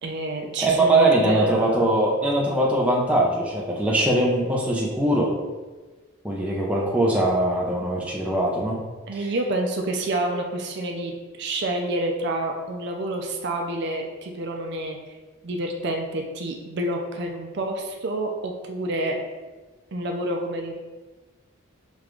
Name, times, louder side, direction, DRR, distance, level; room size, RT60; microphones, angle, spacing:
voice 1, 0.0-1.9 9.1-15.0 15.4-19.2 19.9-20.7, right 1 dB, 50° right, 2 dB, 0.4 m, -28 dB
voice 2, 0.6-5.3 6.2-8.8 9.1-9.3, right 1 dB, 5° right, -4 dB, 0.6 m, -21 dB
6.9 x 2.4 x 3.0 m, 1.3 s
head